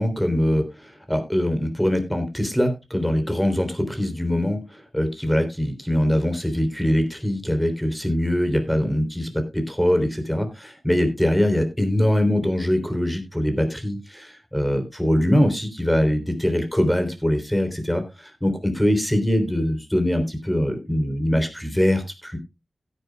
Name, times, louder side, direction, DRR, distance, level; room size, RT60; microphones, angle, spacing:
voice 1, 0.0-18.0 18.4-22.4, equal, 5° left, 7 dB, 3.4 m, -22 dB
16.5 x 10.0 x 2.3 m, 0.24 s
wide cardioid pair, 65°, 0 cm